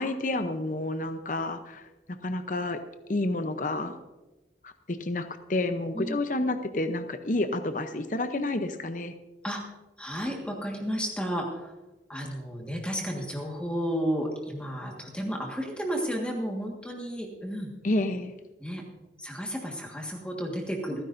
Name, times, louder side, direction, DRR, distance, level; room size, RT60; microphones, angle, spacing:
voice 1, 0.0-1.8 2.2-2.8 3.1-3.9 4.6-9.1 17.8-18.3, left 2 dB, 45° left, 9 dB, 0.7 m, -29 dB
voice 2, 10.0-11.7 12.1-17.7 18.6-18.8 19.2-21.0, equal, 5° left, 0 dB, 1.6 m, -32 dB
28.0 x 10.0 x 2.6 m, 1.1 s
head